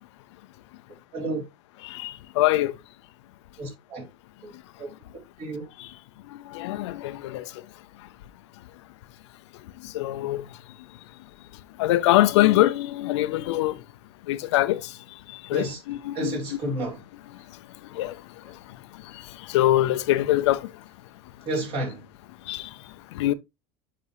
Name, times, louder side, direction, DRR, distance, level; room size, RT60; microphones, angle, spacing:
voice 1, 1.1-1.4 3.6-4.1 4.4-4.5 4.8-4.9 5.4-5.6 15.5-15.8 16.1-17.0 21.5-22.0, right 2 dB, 45° right, 3.0 m, -31 dB
voice 2, 1.8-2.7 5.8-5.9 6.5-7.5 9.9-10.4 11.8-13.8 14.3-14.8 15.5-16.4 16.6-16.7 17.9-18.1 19.5-20.6 22.5-22.7 23.1-23.3, left 15 dB, 85° left, 0.6 m, -23 dB
7.4 x 5.2 x 3.0 m
supercardioid pair, 135°, 14 cm